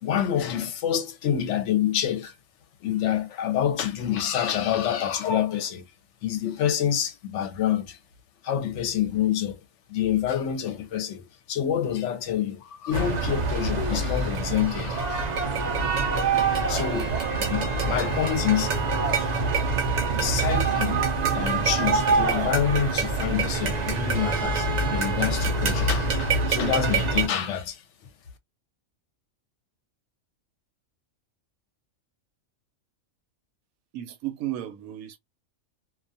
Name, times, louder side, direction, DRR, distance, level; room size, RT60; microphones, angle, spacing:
voice 1, 0.0-2.3 2.8-5.9 6.2-8.0 8.4-9.6 9.9-15.3 16.1-16.3 16.7-18.7 19.2-19.3 20.1-21.0 21.3-27.8, left 10 dB, 65° left, 0.8 m, -27 dB
sound 1, 12.9-27.3, right 3 dB, 55° right, 0.4 m, -25 dB
sound 2, 13.8-14.5 14.8-14.9 15.6-15.7 16.4-16.8, left 6 dB, 35° left, 1.0 m, -39 dB
voice 2, 33.9-35.2, right 13 dB, 90° right, 1.0 m, -34 dB
2.4 x 2.3 x 2.5 m
omnidirectional pair, 1.4 m